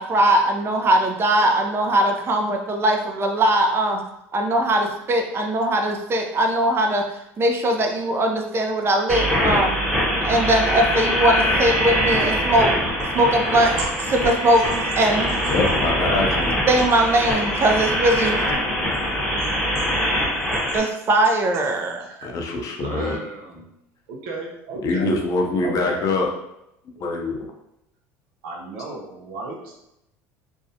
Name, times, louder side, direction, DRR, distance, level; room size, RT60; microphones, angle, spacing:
voice 1, 0.0-4.0 4.3-7.0 7.4-9.7 10.2-12.7 13.1-13.7 14.1-14.6 15.0-15.2 16.7-18.4 20.7-22.1, right 1 dB, 30° right, 3 dB, 0.5 m, -20 dB
sound 1, 9.1-20.8, equal, 5° left, 0.8 m, -23 dB
voice 2, 10.6-11.3 13.0-13.1 13.8-14.1 15.4-15.5 16.9-17.1 17.5-17.6 21.5-21.7 22.2-22.3 22.8-23.6 24.1-25.1 25.6-26.1 27.0-27.1 28.4-29.7, right 3 dB, 75° right, -1 dB, 0.7 m, -34 dB
voice 3, 15.5-16.5 22.2-23.2 24.8-26.3 27.0-27.5, left 2 dB, 50° left, 2 dB, 0.6 m, -24 dB
2.5 x 2.0 x 2.7 m, 0.82 s
supercardioid pair, 85°, 8 cm